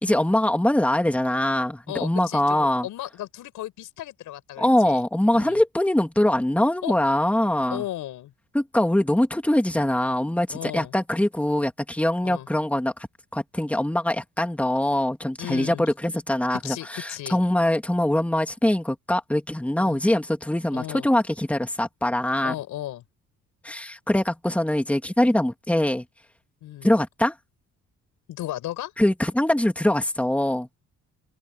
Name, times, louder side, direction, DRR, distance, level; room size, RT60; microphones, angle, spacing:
voice 1, 0.0-2.9 4.6-7.8 8.5-12.9 13.3-22.5 23.6-26.0 26.8-27.3 29.0-30.7, left 1 dB, 5° left, 2.6 m, -23 dB
voice 2, 1.9-5.0 5.3-5.6 6.8-6.9 7.7-8.3 10.5-10.9 12.2-12.5 15.4-15.8 16.5-17.4 19.8-20.0 20.7-21.1 22.4-23.0 26.6-26.9 28.3-28.9, left 14 dB, 85° left, 5.2 m, -35 dB
cardioid pair, 90°, 30 cm